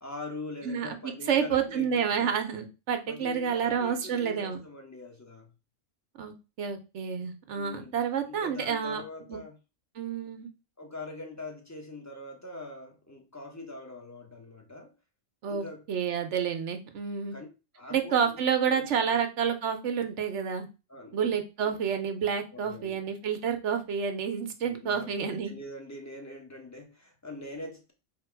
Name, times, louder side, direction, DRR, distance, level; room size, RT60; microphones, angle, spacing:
voice 1, 0.0-2.3 3.1-5.5 7.5-7.9 8.3-9.6 10.8-14.9 15.5-15.8 17.3-17.5 17.8-18.2 18.7-18.9 20.9-21.3 21.6-21.8 22.5-23.0 24.6-27.9, left 2 dB, 15° left, 0.8 m, -43 dB
voice 2, 0.6-4.6 6.2-9.0 9.3-9.4 10.0-10.5 15.4-17.4 17.9-20.7 21.1-25.5, right 7 dB, 65° right, 1.0 m, -29 dB
3.7 x 2.9 x 4.6 m
omnidirectional pair, 1.4 m